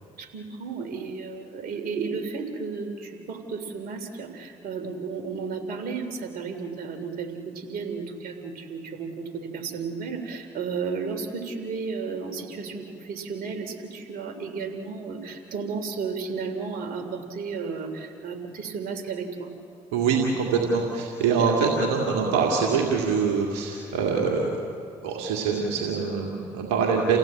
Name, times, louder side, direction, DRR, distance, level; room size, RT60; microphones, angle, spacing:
voice 1, 0.2-19.5, right 5 dB, 70° right, 6 dB, 3.3 m, -33 dB
voice 2, 19.9-24.7 25.0-27.2, right 5 dB, 90° right, -1 dB, 2.3 m, -24 dB
29.0 x 16.5 x 8.7 m, 2.4 s
supercardioid pair, 55°, 16 cm